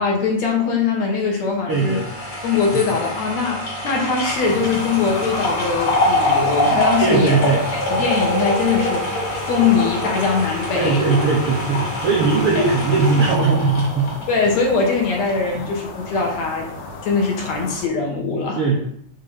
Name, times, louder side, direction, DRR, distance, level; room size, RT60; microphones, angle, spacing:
voice 1, 0.0-2.0 2.4-7.4 7.7-11.0 12.5-12.7 14.3-16.7 17.0-18.8, left 5 dB, 65° left, 0 dB, 2.4 m, -21 dB
sound 1, 1.7-14.9 15.3-15.4, left 1 dB, 40° left, 2.8 m, -24 dB
voice 2, 1.7-2.1 7.0-7.6 10.7-14.1 15.5-15.6 18.6-18.8, right 4 dB, 70° right, -1 dB, 1.4 m, -19 dB
sound 2, 4.3-17.9, left 3 dB, 85° left, 2.7 m, -34 dB
5.5 x 3.6 x 5.5 m, 0.66 s
omnidirectional pair, 3.5 m